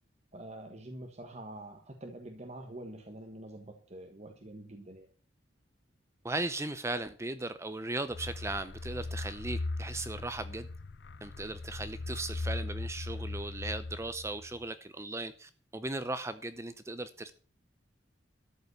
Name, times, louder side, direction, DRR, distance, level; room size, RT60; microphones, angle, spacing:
voice 1, 0.3-5.1, right 1 dB, 35° right, 1.4 m, -46 dB
voice 2, 6.2-10.7 11.2-17.3, right 2 dB, 15° right, 0.6 m, -37 dB
sound 1, 8.1-14.6, left 2 dB, 60° left, 0.6 m, -39 dB
13.0 x 5.4 x 8.1 m
head